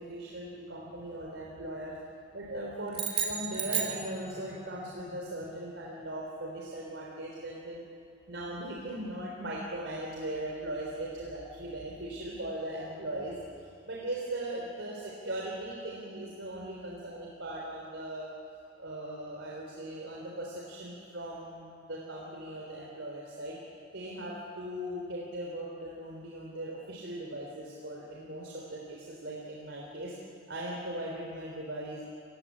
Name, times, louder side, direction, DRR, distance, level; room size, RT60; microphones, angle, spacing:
voice 1, 0.0-2.0 2.3-7.8 8.3-18.3 18.8-23.6 23.9-30.1 30.5-32.0, right 1 dB, 75° right, -3 dB, 3.6 m, -39 dB
sound 1, 2.9-4.7, right 7 dB, 30° right, 2.4 m, -33 dB
28.0 x 17.0 x 8.6 m, 2.4 s
head